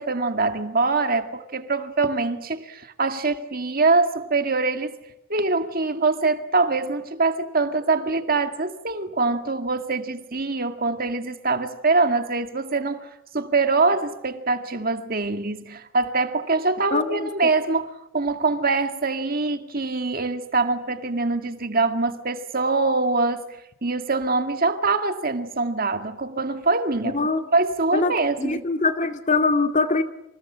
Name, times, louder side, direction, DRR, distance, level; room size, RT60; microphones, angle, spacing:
voice 1, 0.0-5.0 5.3-27.2 27.5-28.6, right 3 dB, 45° right, 2.0 m, -24 dB
voice 2, 16.9-17.3 27.1-27.4 27.9-28.1 28.4-30.0, left 3 dB, 35° left, 2.3 m, -22 dB
28.5 x 28.0 x 7.5 m
head